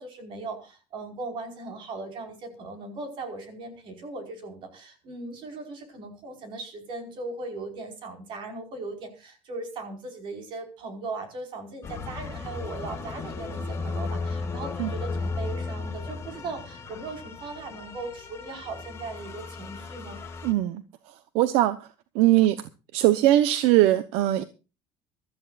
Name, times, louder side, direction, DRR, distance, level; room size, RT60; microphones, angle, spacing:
voice 1, 0.0-20.2, right 3 dB, 55° right, 5.0 m, -38 dB
sound 1, 11.8-20.5, left 4 dB, 25° left, 2.2 m, -35 dB
voice 2, 20.4-20.8 21.3-21.9 22.1-22.6 22.9-24.4, right 14 dB, 85° right, 0.9 m, -20 dB
23.0 x 13.5 x 2.5 m
cardioid pair, 135°, 10 cm